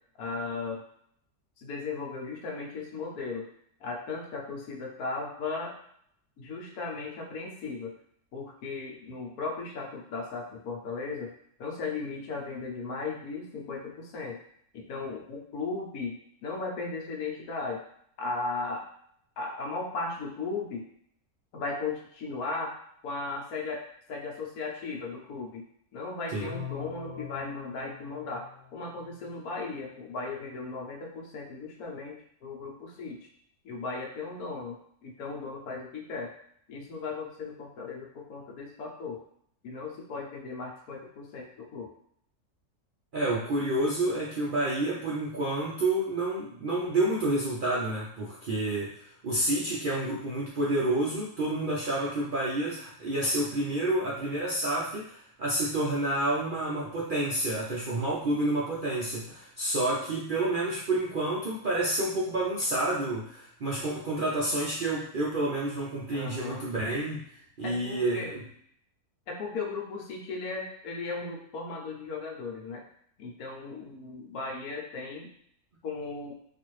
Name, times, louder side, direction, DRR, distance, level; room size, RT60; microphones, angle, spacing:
voice 1, 0.2-0.8 1.6-3.5 3.8-5.8 6.4-7.9 8.3-11.3 11.6-14.4 14.7-17.8 18.2-18.8 19.4-20.9 21.5-22.7 23.0-33.3 33.6-36.3 36.7-39.2 39.6-41.9 66.1-66.6 67.6-68.3 69.3-72.8 73.2-75.3 75.8-76.4, left 3 dB, 75° left, -1 dB, 1.3 m, -36 dB
sound 1, 26.4-29.4, left 7 dB, 20° left, 1.3 m, -43 dB
voice 2, 43.1-67.2 67.6-68.4, right 1 dB, 60° right, -6 dB, 0.5 m, -29 dB
4.0 x 2.5 x 3.1 m, 0.68 s
omnidirectional pair, 1.6 m